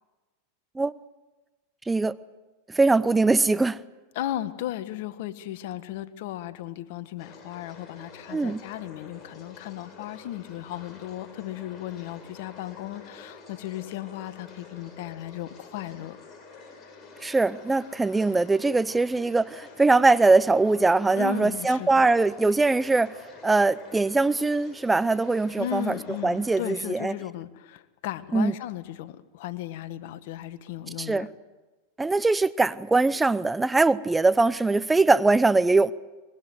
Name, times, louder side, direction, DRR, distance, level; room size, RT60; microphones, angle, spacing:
voice 1, 2.7-3.8 8.3-8.6 17.2-23.1 23.4-26.0 26.2-27.1 28.3-28.5 31.0-31.3 32.0-35.9, right 3 dB, 10° right, 0.7 m, -22 dB
voice 2, 4.1-16.2 21.1-22.1 25.6-31.3, left 13 dB, 65° left, 1.6 m, -36 dB
sound 1, 7.2-26.7, left 4 dB, 35° left, 7.5 m, -48 dB
24.0 x 22.0 x 8.0 m
hypercardioid pair, 100°, 0 cm